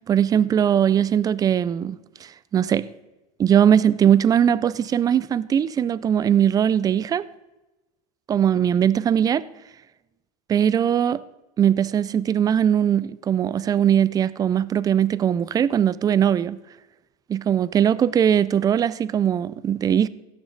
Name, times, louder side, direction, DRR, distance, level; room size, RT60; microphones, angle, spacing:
voice 1, 0.0-2.9 3.4-7.2 8.3-9.4 10.5-11.2 11.6-16.6 17.3-20.1, right 9 dB, 20° right, 0.4 m, -20 dB
16.5 x 7.0 x 3.9 m
supercardioid pair, 115°, 19 cm